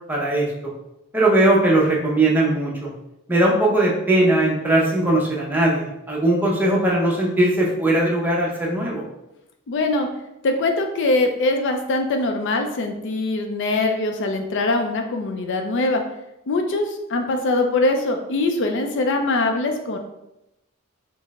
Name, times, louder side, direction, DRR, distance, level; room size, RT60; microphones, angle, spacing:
voice 1, 0.1-0.5 1.1-2.9 3.3-9.0, right 1 dB, 10° right, -3 dB, 0.6 m, -19 dB
voice 2, 9.7-10.1 10.4-16.0 16.5-20.0, left 2 dB, 60° left, 4 dB, 0.4 m, -22 dB
4.4 x 2.0 x 3.4 m, 0.87 s
head